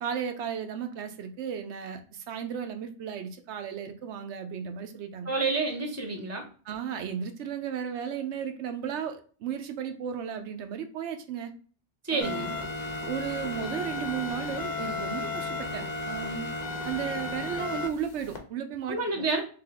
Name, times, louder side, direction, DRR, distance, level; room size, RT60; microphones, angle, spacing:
voice 1, 0.0-5.3 6.6-11.5 12.1-12.5 13.0-16.5 16.8-19.2, right 8 dB, 80° right, 7 dB, 0.9 m, -34 dB
voice 2, 5.2-6.4 12.0-12.5 18.9-19.4, right 3 dB, 15° right, 2 dB, 0.7 m, -29 dB
sound 1, 12.2-18.4, left 2 dB, 45° left, 0.8 m, -34 dB
3.3 x 2.8 x 3.5 m, 0.41 s
omnidirectional pair, 1.2 m